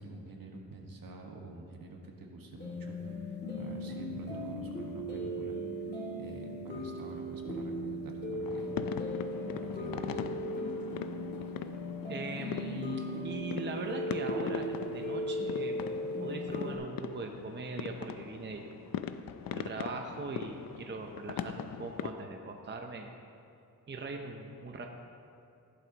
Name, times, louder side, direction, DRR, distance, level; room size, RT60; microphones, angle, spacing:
voice 1, 0.0-5.9 6.2-8.7 9.5-10.2, right 2 dB, 70° right, 1 dB, 1.6 m, -47 dB
sound 1, 2.6-16.7, equal, 30° left, 2.1 m, -37 dB
sound 2, 8.4-22.1, left 8 dB, 70° left, 0.5 m, -41 dB
voice 2, 12.1-18.7 19.5-23.1 23.9-24.9, right 3 dB, 30° right, 3 dB, 0.7 m, -41 dB
15.5 x 11.0 x 3.0 m, 2.7 s
wide cardioid pair, 125°, 36 cm